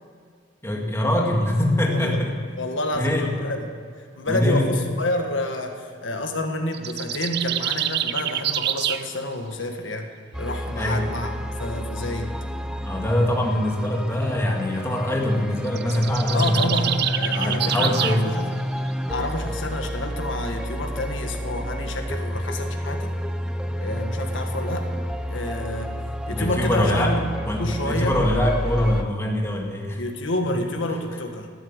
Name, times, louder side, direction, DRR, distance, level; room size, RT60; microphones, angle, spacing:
voice 1, 0.6-2.4 2.9-3.3 4.3-4.7 10.7-11.1 12.8-17.0 17.3-18.3 19.4-19.5 26.3-30.0 30.4-30.8, left 1 dB, 15° left, 0 dB, 1.9 m, -23 dB
voice 2, 1.9-2.2 2.6-3.7 4.0-10.1 10.4-11.3 11.6-12.3 16.3-18.4 19.1-23.1 23.8-24.9 25.3-25.9 26.3-27.3 27.6-28.2 30.0-31.5, left 1 dB, 80° left, 4 dB, 1.6 m, -29 dB
sound 1, 6.7-9.1 15.7-18.2, right 11 dB, 55° right, 0.6 m, -26 dB
sound 2, 10.3-29.0, equal, 5° right, 0.5 m, -30 dB
18.0 x 8.7 x 8.1 m, 2.1 s
head